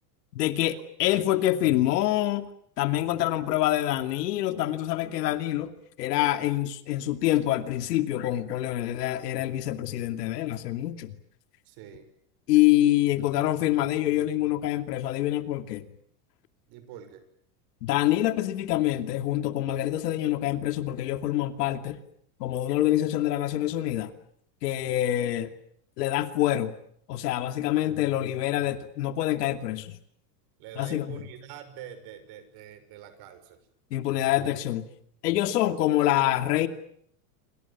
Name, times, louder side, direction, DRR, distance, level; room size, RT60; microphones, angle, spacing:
voice 1, 0.3-2.5 2.8-5.7 6.0-11.1 12.5-15.8 17.8-22.0 22.4-24.1 24.6-25.5 26.0-26.7 27.1-30.0 30.8-31.2 33.9-34.9 35.2-36.7, left 14 dB, 80° left, 2.7 m, -26 dB
voice 2, 11.6-12.1 16.7-17.2 30.6-33.6, right 9 dB, 50° right, 6.2 m, -45 dB
28.5 x 25.5 x 7.3 m
supercardioid pair, 145°, 47 cm